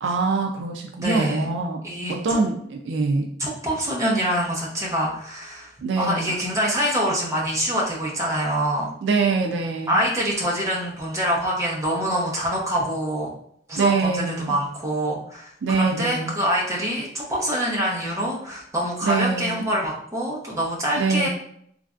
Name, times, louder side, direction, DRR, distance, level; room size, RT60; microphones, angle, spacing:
voice 1, 0.0-1.8 2.1-3.3 5.8-6.4 9.0-10.0 13.8-14.6 15.6-16.4 19.0-19.6 21.0-21.3, right 4 dB, 70° right, 2 dB, 0.4 m, -24 dB
voice 2, 1.0-1.5 1.8-2.4 3.4-8.9 9.9-13.3 13.7-21.3, equal, 15° right, -4 dB, 0.7 m, -25 dB
3.1 x 2.5 x 2.4 m, 0.67 s
head